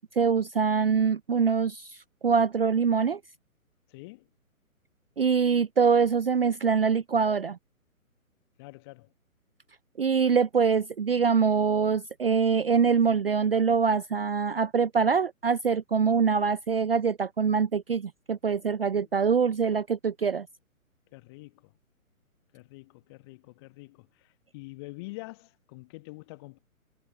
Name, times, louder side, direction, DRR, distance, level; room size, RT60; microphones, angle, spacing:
voice 1, 0.0-1.9 2.2-3.2 5.2-7.6 10.0-20.5, right 6 dB, 45° right, 0.5 m, -24 dB
voice 2, 3.9-4.3 8.6-9.1 18.9-19.1 21.1-21.7 22.5-26.6, left 23 dB, 20° left, 1.3 m, -46 dB
figure-of-eight pair, 135°, 43 cm